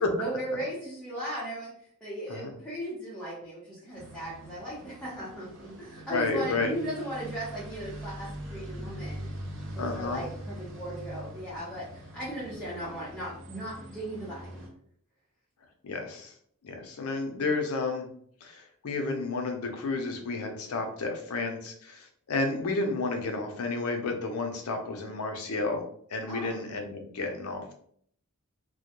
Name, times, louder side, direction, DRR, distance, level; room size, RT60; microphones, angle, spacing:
voice 1, 0.2-1.7 2.0-9.2 9.7-14.6 26.3-26.5, right 1 dB, 5° left, -10 dB, 0.7 m, -37 dB
sound 1, 4.0-14.7, right 1 dB, 60° right, 0.6 m, -42 dB
voice 2, 6.1-6.7 9.8-10.2 15.8-16.3 16.6-18.1 18.4-25.8 26.1-27.7, left 3 dB, 70° left, 4 dB, 0.5 m, -31 dB
2.1 x 2.1 x 2.8 m, 0.63 s
head